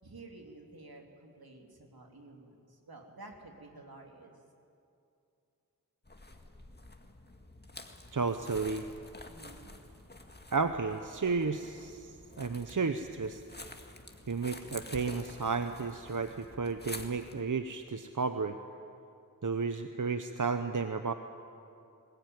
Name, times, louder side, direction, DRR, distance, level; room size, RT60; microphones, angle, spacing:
voice 1, 0.0-4.3 9.3-9.7, right 2 dB, 80° right, 2 dB, 3.1 m, -51 dB
sound 1, 6.1-17.4, left 2 dB, 30° left, 1.9 m, -49 dB
voice 2, 8.1-8.9 10.5-13.4 14.3-18.6 19.4-21.1, right 4 dB, 60° right, 8 dB, 0.9 m, -33 dB
21.0 x 20.5 x 9.5 m, 2.6 s
wide cardioid pair, 60°, 36 cm